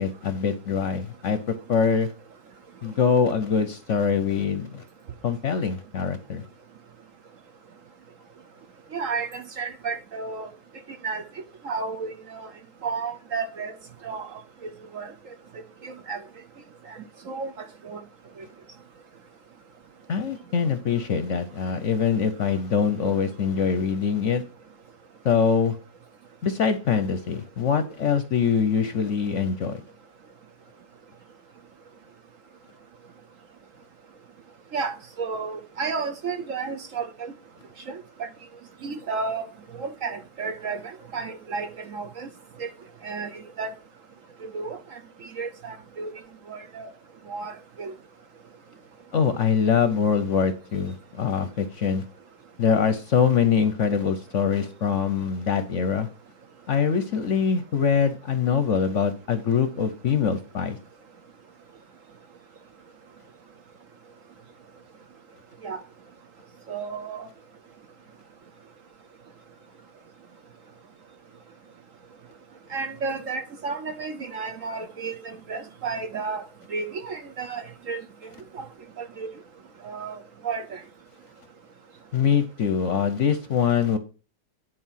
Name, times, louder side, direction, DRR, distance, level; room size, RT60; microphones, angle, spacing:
voice 1, 0.0-2.1 2.8-4.8 5.2-6.4 20.1-24.4 25.2-25.8 26.4-29.8 49.1-52.0 52.6-56.1 56.7-60.8 82.1-84.0, left 6 dB, 55° left, 0.9 m, -23 dB
voice 2, 8.9-10.5 11.0-11.2 11.6-12.5 12.8-13.7 14.0-15.1 15.8-16.2 17.3-17.5 17.8-18.0 34.7-37.3 37.9-38.3 38.8-39.4 39.8-40.8 41.1-42.3 42.6-42.7 43.0-43.3 43.6-43.7 44.5-44.8 45.4-46.1 46.5-46.9 47.3-47.5 47.8-47.9 65.6-65.8 66.7-67.3 72.7-76.4 76.7-78.0 78.5-78.7 79.0-79.3 79.8-80.2 80.4-80.8, right 4 dB, 55° right, 1.1 m, -32 dB
10.0 x 4.8 x 5.7 m
omnidirectional pair, 1.9 m